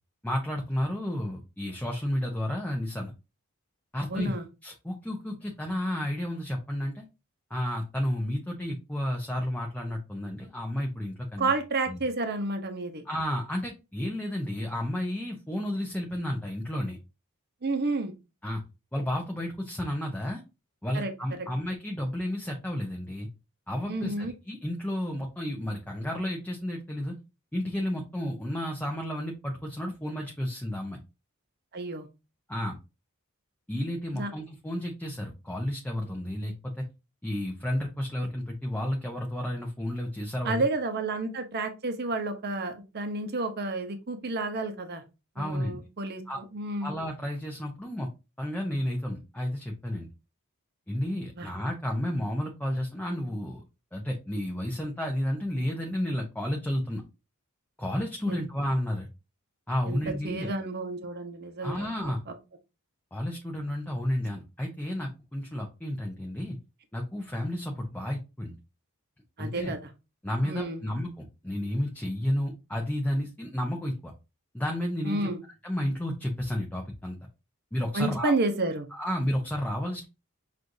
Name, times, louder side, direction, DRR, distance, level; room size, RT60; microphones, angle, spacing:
voice 1, 0.2-3.1 3.9-4.3 4.6-7.1 7.5-11.5 11.9-12.0 13.0-17.0 18.4-18.6 18.9-20.4 20.8-23.3 23.7-27.1 27.5-31.0 32.5-32.7 33.7-36.8 37.2-40.6 45.4-45.8 46.3-46.4 46.8-48.1 48.4-50.1 50.9-53.6 53.9-57.0 57.8-59.1 59.7-60.5 61.6-62.2 63.1-66.6 66.9-68.6 69.4-69.7 70.2-74.1 74.5-75.3 75.6-77.2 77.7-78.3 78.9-80.1, left 1 dB, 5° left, 0.6 m, -32 dB
voice 2, 4.1-4.4 11.4-13.0 17.6-18.1 20.9-21.1 23.9-24.3 31.7-32.1 34.1-34.3 40.4-45.0 45.4-46.9 51.4-51.5 58.2-58.4 59.8-60.0 60.2-62.3 69.4-69.8 70.4-70.8 75.0-75.4 77.9-78.9, right 2 dB, 45° right, 0.7 m, -31 dB
6.1 x 2.5 x 2.6 m
head